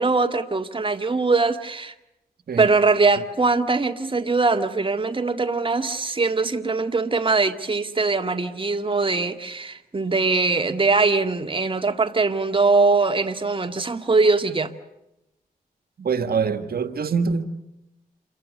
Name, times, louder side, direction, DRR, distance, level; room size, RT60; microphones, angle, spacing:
voice 1, 0.0-1.9 2.6-14.7, right 3 dB, 35° right, 2.0 m, -21 dB
voice 2, 16.0-17.4, right 5 dB, 75° right, 1.8 m, -24 dB
28.0 x 24.0 x 6.6 m
cardioid pair, 60°, 16 cm